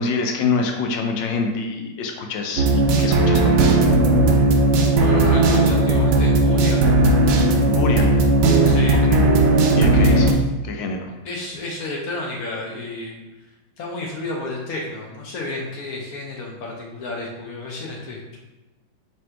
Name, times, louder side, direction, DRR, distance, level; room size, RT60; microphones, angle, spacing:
voice 1, 0.0-3.5 7.7-8.2 9.1-9.3 9.7-10.3 10.6-11.1, left 4 dB, 85° left, 3 dB, 1.3 m, -25 dB
sound 1, 2.6-10.3, right 2 dB, 75° right, 0.8 m, -16 dB
voice 2, 5.0-6.9 8.6-9.0 9.9-10.3 11.2-13.2 13.8-18.4, left 2 dB, 65° left, -1 dB, 1.0 m, -31 dB
3.3 x 2.6 x 4.4 m, 1.1 s
omnidirectional pair, 1.9 m